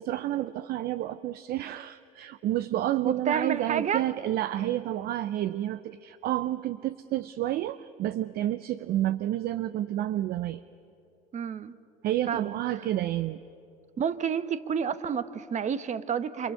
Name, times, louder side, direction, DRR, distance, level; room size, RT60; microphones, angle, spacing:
voice 1, 0.0-10.6 12.0-13.4, right 13 dB, 55° right, 14 dB, 0.6 m, -30 dB
voice 2, 3.0-4.0 11.3-11.7 12.3-12.9 14.0-16.5, right 7 dB, 40° right, 12 dB, 1.3 m, -30 dB
29.5 x 26.5 x 5.7 m, 2.7 s
hypercardioid pair, 80°, 19 cm